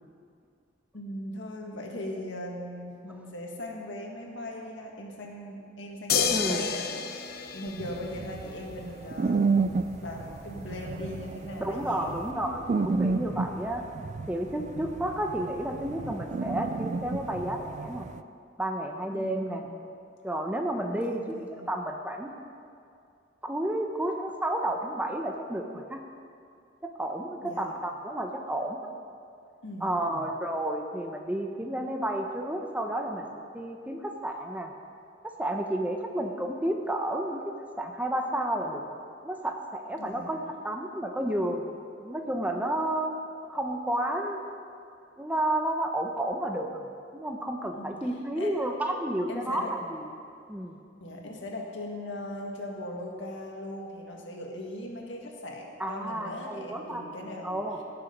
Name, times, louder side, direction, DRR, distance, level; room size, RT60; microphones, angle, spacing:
voice 1, 0.9-12.1 19.1-19.7 21.0-21.6 27.4-27.7 29.6-30.3 40.0-40.3 47.7-48.0 48.4-48.5 49.3-49.7 51.0-57.6, left 1 dB, 85° left, 0 dB, 1.8 m, -39 dB
sound 1, 6.1-8.6 10.3-10.4, left 7 dB, 55° left, 0.7 m, -30 dB
voice 2, 6.3-6.7 11.6-13.8 14.3-18.1 18.6-19.7 20.2-22.3 23.4-26.0 26.8-28.8 29.8-33.3 33.5-34.7 35.2-38.8 39.2-43.2 43.5-44.4 45.2-46.9 47.1-50.1 50.5-50.8 55.8-57.0 57.4-57.8, right 1 dB, 10° right, 3 dB, 0.7 m, -31 dB
sound 2, 7.8-18.2, right 4 dB, 40° right, 0.3 m, -32 dB
17.0 x 6.9 x 5.3 m, 2.4 s
head